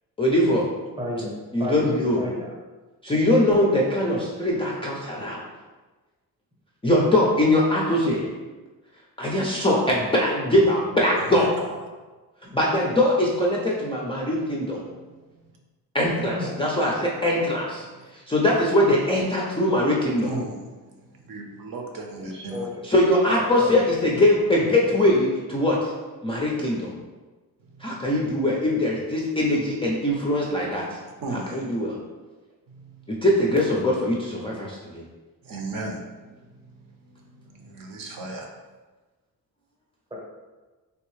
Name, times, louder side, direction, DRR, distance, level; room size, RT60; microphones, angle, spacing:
voice 1, 0.2-0.7 1.5-2.2 3.0-5.4 6.8-8.3 9.2-11.6 12.4-14.8 15.9-17.8 18.3-20.3 22.9-25.9 26.2-26.9 27.8-30.8 31.3-31.9 33.1-35.0, left 1 dB, 15° left, -4 dB, 0.3 m, -22 dB
voice 2, 1.0-1.3 1.6-2.5 16.3-16.6 22.2-22.8 23.3-23.9 40.1-40.2, left 1 dB, 15° right, -2 dB, 0.6 m, -32 dB
voice 3, 11.3-11.8 15.3-15.5 17.8-17.9 20.2-22.7 27.8-28.0 31.2-31.7 32.7-33.0 35.4-36.7 37.0-38.5, right 2 dB, 60° right, 2 dB, 0.6 m, -36 dB
3.4 x 2.6 x 3.0 m, 1.2 s
cardioid pair, 145°, 37 cm